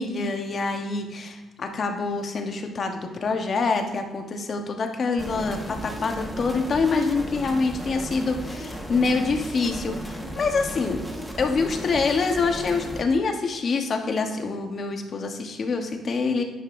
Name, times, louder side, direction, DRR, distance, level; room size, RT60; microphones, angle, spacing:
voice 1, 0.0-11.0 11.4-16.4, left 4 dB, 50° left, 4 dB, 1.1 m, -26 dB
sound 1, 5.2-13.0, equal, 10° right, 1.4 m, -35 dB
9.8 x 5.4 x 2.6 m, 1.2 s
cardioid pair, 90°, 0 cm